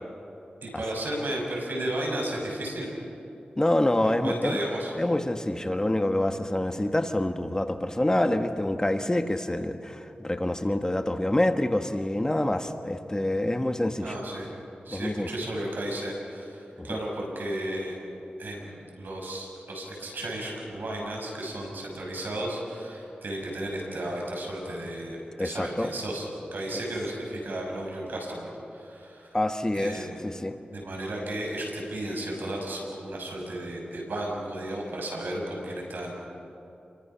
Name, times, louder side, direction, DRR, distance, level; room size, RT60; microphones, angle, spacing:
voice 1, 0.6-2.9 4.0-4.9 14.0-14.5 14.8-18.0 18.4-26.3 26.5-29.4 29.7-30.3 30.7-36.1, right 1 dB, 80° right, -1 dB, 6.5 m, -34 dB
voice 2, 3.6-4.6 5.0-14.2 14.9-15.3 16.8-17.0 25.4-25.9 29.3-30.6, left 1 dB, 20° left, 7 dB, 1.4 m, -26 dB
28.5 x 23.0 x 5.8 m, 2.8 s
cardioid pair, 50°, 3 cm